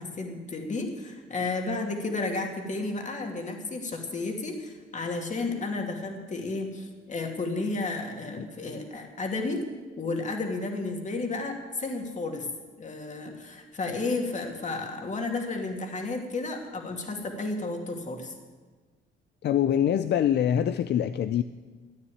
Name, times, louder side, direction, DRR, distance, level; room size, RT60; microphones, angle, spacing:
voice 1, 0.0-9.6 10.0-12.5 12.8-18.3, left 3 dB, 40° left, 2 dB, 2.6 m, -32 dB
voice 2, 19.4-21.4, left 10 dB, 60° left, 12 dB, 0.5 m, -24 dB
14.0 x 9.7 x 8.7 m, 1.4 s
cardioid pair, 90°, 20 cm